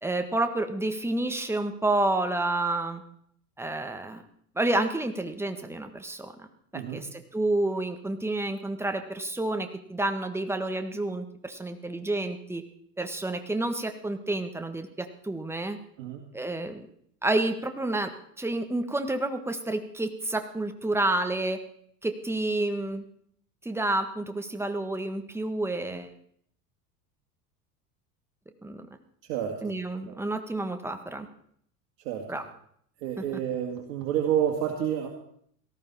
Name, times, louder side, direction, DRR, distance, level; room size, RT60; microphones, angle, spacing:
voice 1, 0.0-3.0 3.6-4.2 4.5-6.5 6.7-12.6 13.0-15.8 16.3-16.9 17.2-21.6 22.0-23.0 23.6-26.1 28.6-28.9 29.6-31.3 32.3-32.4, right 2 dB, 5° right, 7 dB, 1.5 m, -29 dB
voice 2, 6.7-7.0 16.0-16.2 29.2-29.7 30.1-30.2 32.0-32.4 33.0-35.1, right 9 dB, 55° right, 1 dB, 2.2 m, -29 dB
18.0 x 14.0 x 4.3 m, 0.66 s
figure-of-eight pair, 80°, 48 cm